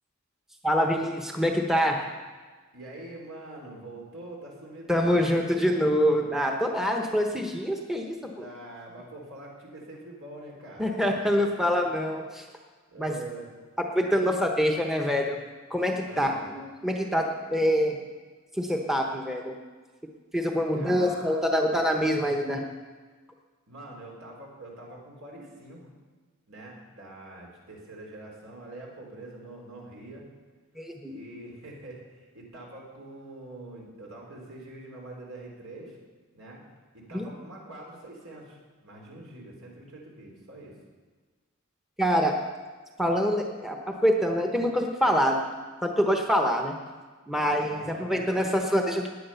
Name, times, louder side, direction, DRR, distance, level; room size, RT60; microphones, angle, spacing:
voice 1, 0.6-2.0 4.9-8.3 10.8-12.5 13.0-13.2 13.9-15.4 15.7-18.0 18.5-19.6 20.3-22.6 30.8-31.1 37.1-37.3 42.0-42.3 43.0-45.4 45.8-46.7 47.3-49.1, equal, ahead, 2 dB, 0.9 m, -25 dB
voice 2, 2.7-5.5 8.3-11.7 12.9-13.5 16.0-16.5 20.7-21.5 23.7-25.9 26.5-30.3 31.1-36.0 36.3-36.6 36.9-40.8 47.5-48.4, right 2 dB, 75° right, -1 dB, 3.9 m, -44 dB
17.0 x 9.8 x 5.7 m, 1.4 s
head